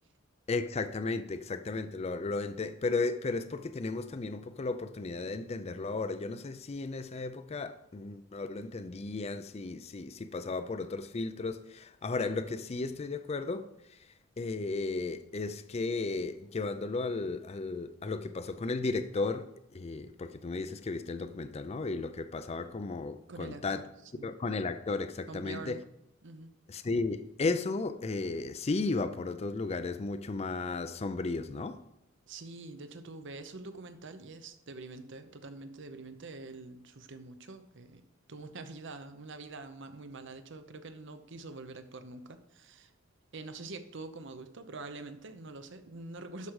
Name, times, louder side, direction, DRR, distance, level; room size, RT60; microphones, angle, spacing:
voice 1, 0.5-14.0 14.4-23.9 24.2-25.8 26.7-31.8, left 3 dB, 30° left, 0.4 m, -34 dB
voice 2, 23.3-23.8 24.1-24.3 25.3-25.8 26.2-26.5 32.3-38.0 38.3-42.9 43.3-46.5, right 3 dB, 60° right, 0.8 m, -45 dB
12.5 x 4.9 x 4.8 m
head